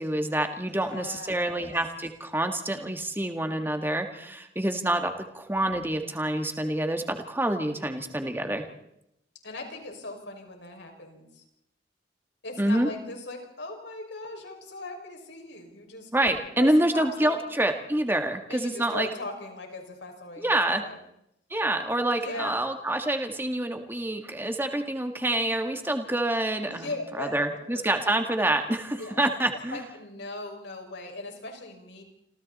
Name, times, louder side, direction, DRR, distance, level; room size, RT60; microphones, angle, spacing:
voice 1, 0.0-8.7 12.6-12.9 16.1-19.1 20.4-20.8 21.5-26.9 27.2-29.8, right 1 dB, 10° right, 5 dB, 1.8 m, -27 dB
voice 2, 0.7-1.7 9.4-11.4 12.4-16.1 16.6-17.4 18.5-21.0 22.2-22.6 26.7-27.8 28.9-29.2 29.7-32.0, left 2 dB, 75° left, 2 dB, 6.1 m, -39 dB
28.0 x 27.5 x 4.3 m, 0.78 s
head